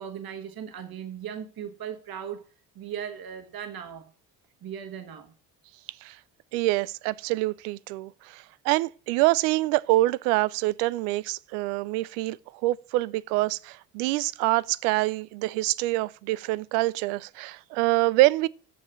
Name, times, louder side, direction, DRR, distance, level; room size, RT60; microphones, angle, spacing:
voice 1, 0.0-2.4 2.7-4.1 4.6-5.3, right 8 dB, 45° right, 1.5 m, -37 dB
voice 2, 6.5-12.4 12.6-18.5, right 19 dB, 70° right, 0.5 m, -25 dB
7.5 x 7.2 x 7.4 m
hypercardioid pair, 50°, 48 cm